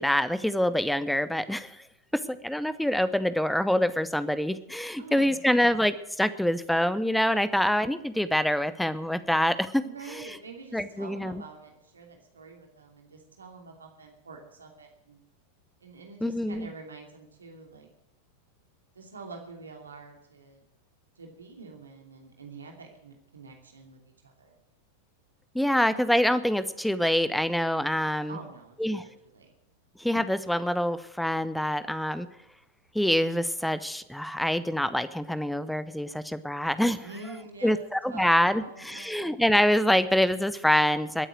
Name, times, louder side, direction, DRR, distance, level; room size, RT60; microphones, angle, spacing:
voice 1, 0.0-1.8 2.1-9.8 10.7-11.4 16.2-16.7 25.5-28.4 28.8-29.1 30.0-32.3 32.9-37.1 37.6-41.3, equal, ahead, 14 dB, 0.8 m, -25 dB
voice 2, 5.0-5.4 9.8-15.2 15.8-17.9 18.9-20.6 21.2-24.6 28.3-29.5 37.0-39.2, right 4 dB, 75° right, 2 dB, 2.7 m, -46 dB
21.5 x 9.1 x 6.3 m, 0.85 s
figure-of-eight pair, 90°, 0 cm